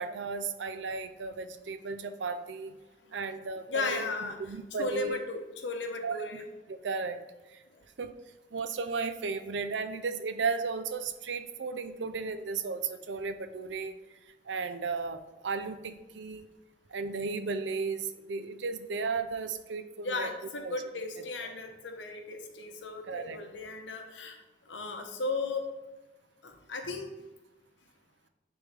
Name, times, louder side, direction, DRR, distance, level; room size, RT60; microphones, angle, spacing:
voice 1, 0.0-2.8 3.1-5.2 6.0-6.2 6.7-7.2 7.5-7.6 8.0-8.1 8.5-13.9 14.5-16.5 16.9-20.3 20.6-20.7 23.1-23.4, right 4 dB, 85° right, 10 dB, 0.5 m, -35 dB
voice 2, 3.7-4.4 4.8-6.4 20.0-24.4 24.7-25.7 26.4-27.1, left 3 dB, 85° left, 5 dB, 0.9 m, -35 dB
9.4 x 3.6 x 3.3 m, 1.1 s
head